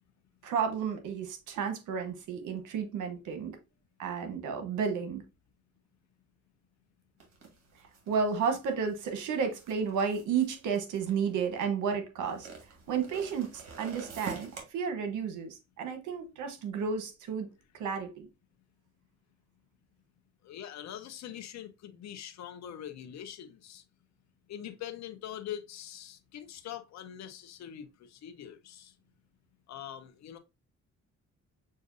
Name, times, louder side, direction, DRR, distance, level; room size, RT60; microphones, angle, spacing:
voice 1, 0.4-3.5 4.0-5.2 8.1-12.5 12.9-17.5 17.8-18.3, right 6 dB, 80° right, 1.0 m, -32 dB
sound 1, 7.2-11.6 12.3-14.6, right 5 dB, 60° right, 1.7 m, -46 dB
voice 2, 20.4-23.8 24.5-28.9 29.7-30.4, left 10 dB, 65° left, 0.7 m, -43 dB
6.4 x 2.6 x 2.6 m
cardioid pair, 90°, 30 cm